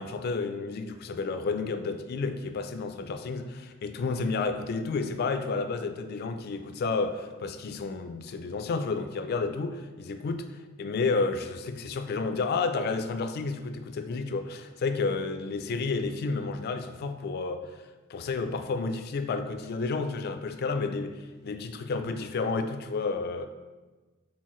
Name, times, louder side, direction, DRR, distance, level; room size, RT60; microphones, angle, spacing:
voice 1, 0.0-10.5 10.8-17.6 18.1-23.5, left 4 dB, 50° left, 8 dB, 0.3 m, -31 dB
4.5 x 3.9 x 3.0 m, 1.2 s
head